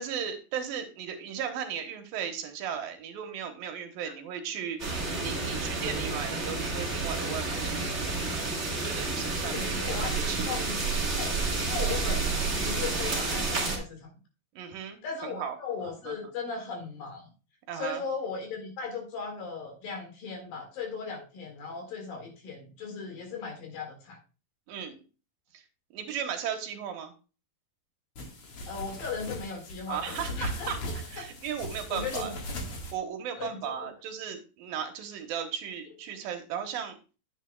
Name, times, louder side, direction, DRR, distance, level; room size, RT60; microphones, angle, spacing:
voice 1, 0.0-8.4 8.8-10.4 14.5-15.6 16.1-16.2 17.7-18.0 24.7-25.0 25.5-25.6 25.9-27.1 29.9-30.8 31.1-32.3 32.9-37.0, right 8 dB, 75° right, 5 dB, 2.8 m, -36 dB
sound 1, 4.8-13.8, right 3 dB, 25° right, 1.6 m, -30 dB
voice 2, 9.4-10.7 11.2-11.4 11.6-14.1 15.0-17.3 17.7-24.2 28.7-31.3 31.9-32.3 33.4-33.9, left 5 dB, 70° left, 2 dB, 3.8 m, -37 dB
sound 2, 28.2-32.9, equal, 45° left, 2.2 m, -38 dB
10.0 x 8.9 x 2.3 m, 0.33 s
omnidirectional pair, 4.2 m